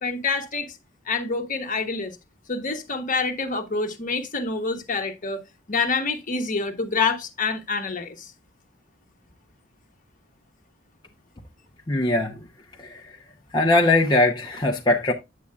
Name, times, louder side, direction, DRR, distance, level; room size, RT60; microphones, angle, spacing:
voice 1, 0.0-0.7 1.1-2.1 2.5-8.3, left 4 dB, 45° left, 1.3 m, -27 dB
voice 2, 11.9-12.4 12.8-13.1 13.5-15.1, left 2 dB, 20° left, 0.8 m, -21 dB
8.5 x 8.1 x 2.4 m
head